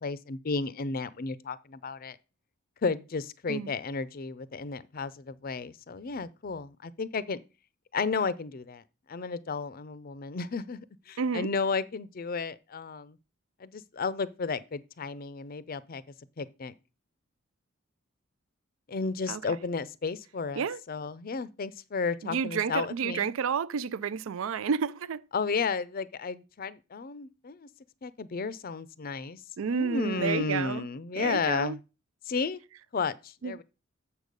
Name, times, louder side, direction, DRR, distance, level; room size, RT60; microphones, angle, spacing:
voice 1, 0.0-2.2 2.8-7.4 7.9-8.8 9.1-13.2 13.6-16.0 16.4-16.7 18.9-23.3 25.3-27.7 28.0-29.4 29.8-31.8 32.3-32.6 32.9-33.6, left 4 dB, 45° left, 0.5 m, -33 dB
voice 2, 11.2-11.5 19.3-19.4 20.6-20.8 22.2-25.2 29.6-30.9 31.2-31.8 33.4-33.5, right 6 dB, 75° right, 0.4 m, -30 dB
7.1 x 6.5 x 5.3 m
head